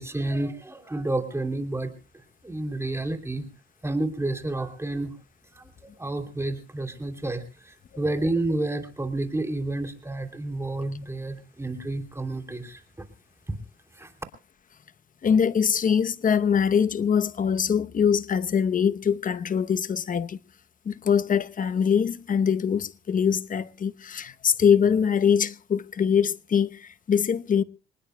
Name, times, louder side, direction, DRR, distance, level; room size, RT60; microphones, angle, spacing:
voice 1, 0.0-1.9 2.4-3.5 3.8-5.1 5.5-5.7 6.0-12.8 13.5-13.6 14.0-14.1, right 2 dB, 15° right, 3.0 m, -30 dB
voice 2, 15.2-20.4 20.9-27.6, left 7 dB, 45° left, 0.9 m, -23 dB
26.5 x 19.5 x 2.2 m
cardioid pair, 90°, 20 cm